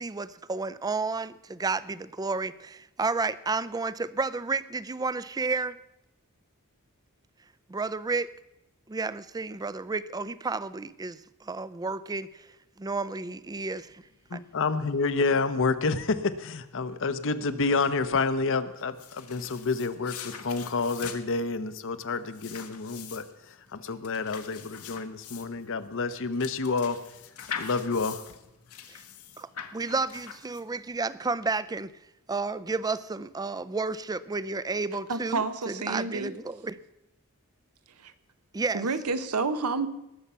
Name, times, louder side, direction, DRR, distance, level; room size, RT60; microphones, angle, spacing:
voice 1, 0.0-1.3 1.6-1.8 2.2-2.5 3.0-3.9 4.2-5.7 7.7-8.2 8.9-10.6 11.0-11.1 11.5-12.2 12.8-13.8 29.7-31.9 32.3-35.4 35.7-36.3 38.6-38.8, right 3 dB, 15° right, 16 dB, 0.4 m, -30 dB
voice 2, 14.3-27.0 27.6-28.2, left 4 dB, 60° left, 11 dB, 0.8 m, -29 dB
sound 1, 18.8-30.9, left 7 dB, 80° left, 1.4 m, -43 dB
voice 3, 35.1-36.3 38.0-38.1 38.7-39.9, right 4 dB, 85° right, 11 dB, 0.9 m, -29 dB
19.5 x 7.2 x 5.6 m, 0.90 s
head